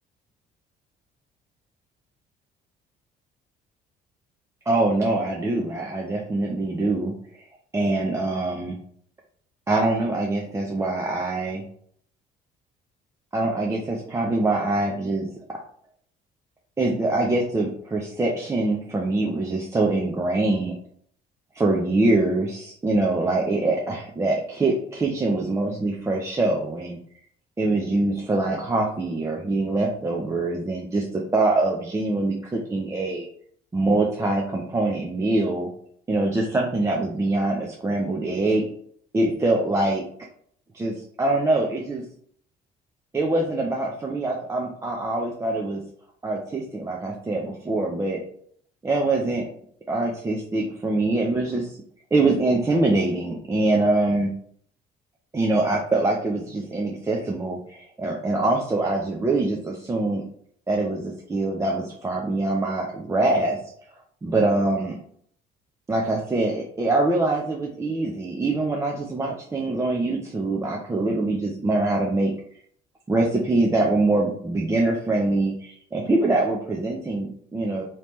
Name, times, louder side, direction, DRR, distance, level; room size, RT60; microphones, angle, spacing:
voice 1, 4.7-7.5 7.7-8.8 9.7-11.6 13.3-15.3 16.8-20.7 21.5-27.0 27.6-33.3 33.7-35.7 36.1-38.6 39.1-40.0 40.7-42.0 43.1-45.8 46.2-48.2 48.8-49.5 49.9-51.8 52.1-54.3 55.3-60.2 60.7-63.6 64.2-65.0 65.9-72.3 73.1-77.8, right 2 dB, 15° right, -1 dB, 0.5 m, -24 dB
3.3 x 2.9 x 3.0 m, 0.62 s
cardioid pair, 110°, 17 cm